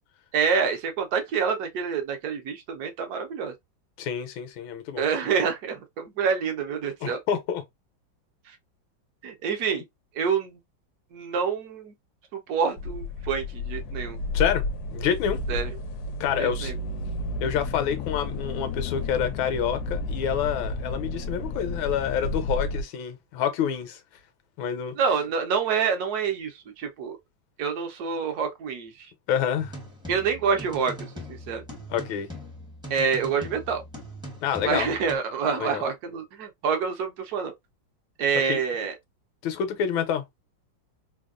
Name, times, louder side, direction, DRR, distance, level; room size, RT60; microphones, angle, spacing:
voice 1, 0.3-3.5 5.0-7.2 9.2-9.8 10.1-10.6 11.1-11.9 12.3-14.2 15.5-15.7 16.4-16.7 25.0-27.2 27.6-29.1 30.1-31.0 31.3-31.6 32.9-33.8 34.6-37.5 38.2-38.9, right 6 dB, 65° right, 1.0 m, -27 dB
voice 2, 4.0-5.0 7.0-7.6 14.3-14.6 14.9-15.4 16.2-16.7 17.4-24.0 24.6-24.9 29.3-29.7 31.9-32.3 34.4-34.9 35.6-35.8 38.5-38.6 39.4-40.2, left 8 dB, 90° left, 1.4 m, -27 dB
sound 1, 12.8-22.8, left 2 dB, 75° left, 0.9 m, -32 dB
sound 2, 29.6-35.2, equal, 5° right, 0.4 m, -41 dB
3.4 x 2.2 x 2.3 m
omnidirectional pair, 2.2 m